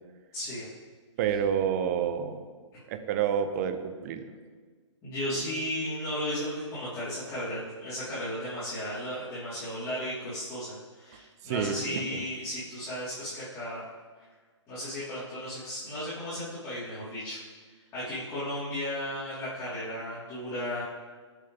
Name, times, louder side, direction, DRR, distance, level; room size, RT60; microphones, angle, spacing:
voice 1, 0.3-0.6 5.0-13.8 14.7-17.4 17.9-20.8, left 1 dB, 20° left, -12 dB, 4.4 m, -35 dB
voice 2, 1.2-2.4 2.9-4.3 11.4-12.2, right 8 dB, 30° right, 9 dB, 1.1 m, -29 dB
21.5 x 8.4 x 3.7 m, 1.5 s
figure-of-eight pair, 135°, 16 cm